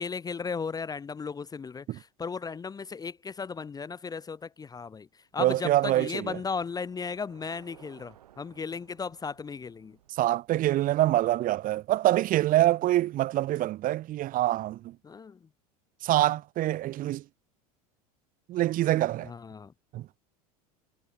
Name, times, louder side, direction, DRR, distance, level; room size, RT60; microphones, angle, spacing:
voice 1, 0.0-5.1 5.3-10.0 15.0-15.4 19.3-19.7, left 5 dB, 20° left, 0.8 m, -36 dB
voice 2, 5.4-6.4 10.1-15.0 16.0-17.2 18.5-19.3 19.9-20.1, right 15 dB, 45° right, 1.4 m, -25 dB
Bicycle, 5.6-11.9, right 11 dB, 85° right, 7.8 m, -60 dB
hypercardioid pair, 90°, 19 cm